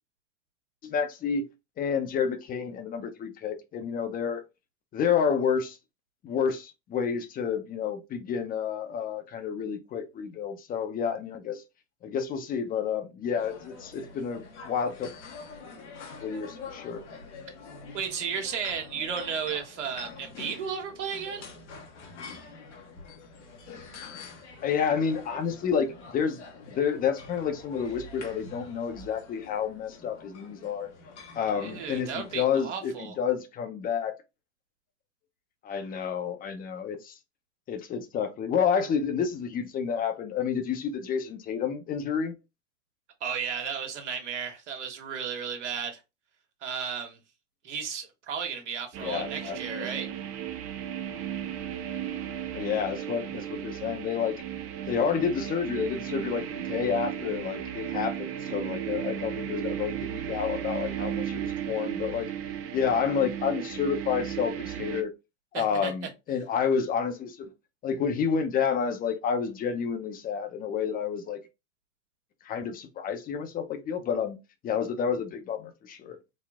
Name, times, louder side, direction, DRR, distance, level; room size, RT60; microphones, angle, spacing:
voice 1, 0.8-1.4 1.8-4.4 4.9-5.8 6.2-11.6 12.0-15.1 16.2-17.0 24.6-26.4 26.7-30.9 31.3-34.1 35.6-37.1 37.7-42.3 49.0-49.9 52.5-54.4 54.9-62.3 62.7-65.1 65.5-67.5 67.8-71.4 72.4-74.4 74.6-76.2, left 7 dB, 25° left, 0.7 m, -29 dB
sound 1, 13.4-32.4, left 4 dB, 75° left, 1.3 m, -46 dB
voice 2, 17.9-21.4 31.6-33.1 43.2-46.0 46.6-47.2 47.6-50.1 65.5-65.9, right 7 dB, 80° right, 1.3 m, -34 dB
sound 2, 48.9-65.0, right 10 dB, 40° right, 0.8 m, -35 dB
4.0 x 2.0 x 3.5 m
hypercardioid pair, 110°, 35 cm